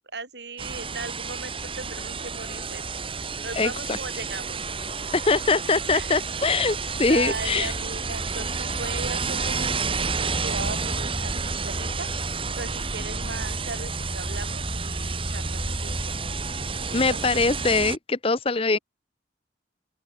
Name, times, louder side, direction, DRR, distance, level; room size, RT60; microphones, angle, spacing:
voice 1, 0.1-2.8 3.1-4.6 5.9-6.2 7.1-12.1 12.6-16.2 16.9-17.2, right 3 dB, 60° right, 6.8 m, -37 dB
sound 1, 0.6-18.0, right 4 dB, 30° right, 3.1 m, -30 dB
voice 2, 3.5-4.0 5.1-7.7 16.9-18.8, left 3 dB, 30° left, 0.8 m, -23 dB
open air
head